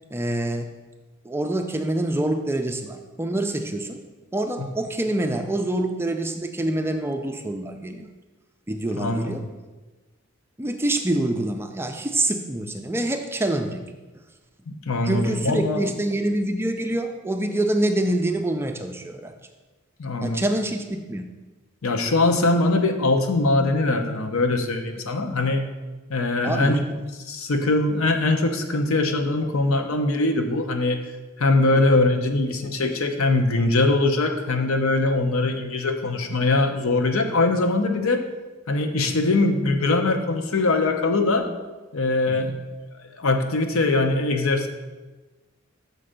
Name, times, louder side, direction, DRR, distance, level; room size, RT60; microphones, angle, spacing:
voice 1, 0.1-0.7 1.2-4.0 4.3-8.1 8.7-9.5 10.6-13.9 15.0-19.3 20.2-21.2 26.4-26.8 31.7-32.0 42.3-42.5, right 1 dB, 10° right, 5 dB, 0.4 m, -26 dB
voice 2, 8.9-9.3 14.7-15.8 20.0-20.4 21.8-25.6 26.1-26.8 27.3-31.0 31.4-38.2 38.7-41.5 41.9-42.6 43.2-44.7, left 2 dB, 80° left, 6 dB, 0.7 m, -22 dB
6.7 x 4.3 x 5.1 m, 1.2 s
head